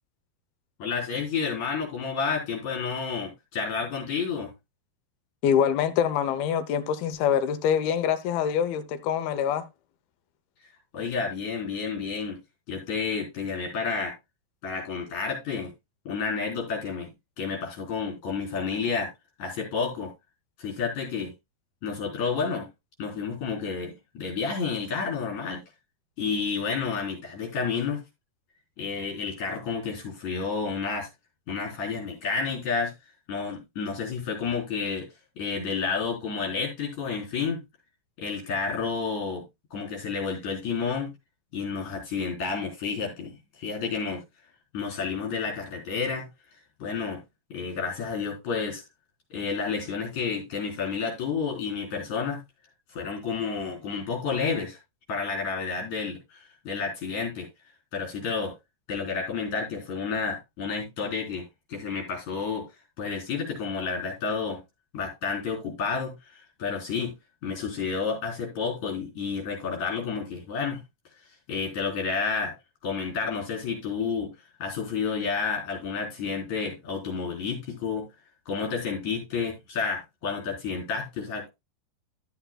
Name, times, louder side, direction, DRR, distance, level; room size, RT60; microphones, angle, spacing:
voice 1, 0.8-4.5 10.9-12.4 12.7-14.1 14.6-15.7 16.1-17.1 17.4-19.1 19.4-20.1 20.6-21.3 21.8-22.7 23.0-25.6 26.2-28.0 28.8-31.1 31.5-32.9 33.3-35.1 35.4-37.6 38.2-39.5 39.7-41.1 41.5-44.2 44.7-46.3 46.8-47.2 47.5-48.8 49.3-52.4 52.9-54.8 55.1-57.5 57.9-58.5 58.9-62.7 63.0-64.6 64.9-67.1 67.4-70.8 71.5-72.5 72.8-74.3 74.6-78.1 78.5-81.5, left 5 dB, 50° left, 5.2 m, -30 dB
voice 2, 5.4-9.6, left 8 dB, 90° left, 2.8 m, -25 dB
13.5 x 8.0 x 2.3 m
omnidirectional pair, 4.2 m